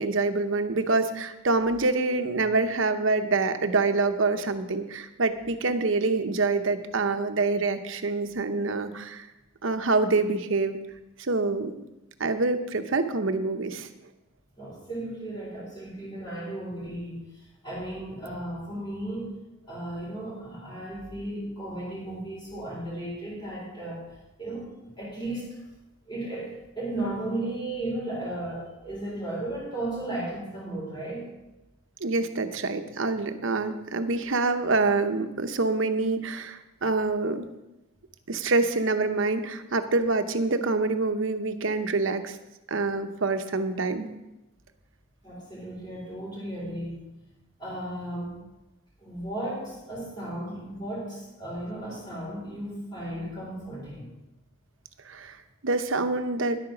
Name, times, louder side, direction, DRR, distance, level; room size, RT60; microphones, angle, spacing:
voice 1, 0.0-9.3 9.6-10.8 11.2-11.7 12.2-13.9 32.0-37.5 38.3-42.4 42.7-44.1 55.0-55.4 55.6-56.6, right 3 dB, 65° right, 9 dB, 0.8 m, -26 dB
voice 2, 14.6-19.4 19.7-24.0 24.4-25.6 26.1-31.3 45.2-47.0 47.6-48.3 49.0-54.1, right 1 dB, 20° left, -8 dB, 3.7 m, -35 dB
10.5 x 8.9 x 6.0 m, 0.98 s
head